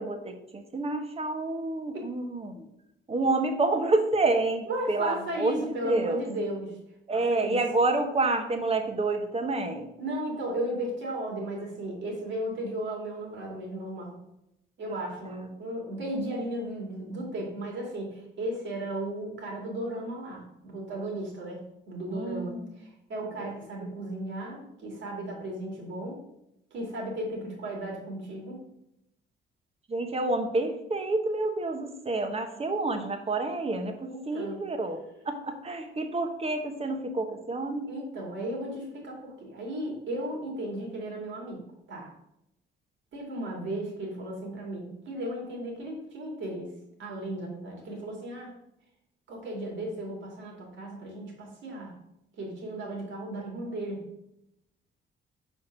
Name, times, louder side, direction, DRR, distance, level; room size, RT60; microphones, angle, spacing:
voice 1, 0.0-2.7 3.1-6.2 7.1-9.9 22.1-22.8 23.4-23.5 29.9-37.9, right 2 dB, 30° right, 6 dB, 1.1 m, -28 dB
voice 2, 4.7-6.8 7.1-7.6 10.0-14.2 14.8-26.2 26.7-28.6 34.0-34.6 37.9-41.6 41.9-42.1 43.1-46.7 47.0-48.5 49.3-51.9 52.4-54.0, right 1 dB, 70° right, 0 dB, 2.6 m, -35 dB
4.7 x 4.5 x 6.0 m, 0.81 s
cardioid pair, 90°, 20 cm